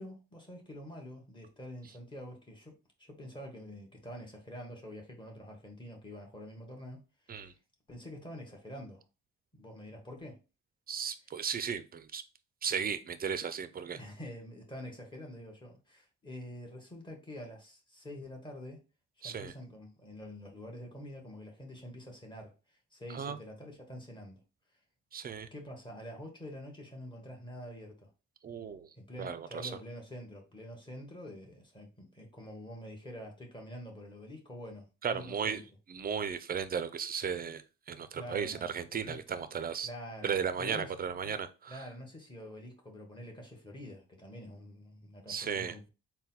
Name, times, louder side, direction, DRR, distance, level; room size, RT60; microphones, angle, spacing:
voice 1, 0.0-7.5 7.9-9.0 9.5-10.4 13.9-18.8 19.2-24.4 25.5-28.1 28.9-35.7 38.1-39.4 39.8-41.0 41.2-41.3 41.7-45.9, equal, 15° left, 1 dB, 1.4 m, -47 dB
voice 2, 10.9-12.2 12.6-14.0 19.2-19.5 23.1-23.4 25.1-25.5 28.4-28.9 29.2-29.7 35.0-35.6 35.9-37.6 37.9-39.9 40.2-41.8 45.3-45.7, right 7 dB, 30° right, 12 dB, 0.4 m, -35 dB
3.9 x 2.2 x 4.0 m, 0.32 s
cardioid pair, 90°, 30 cm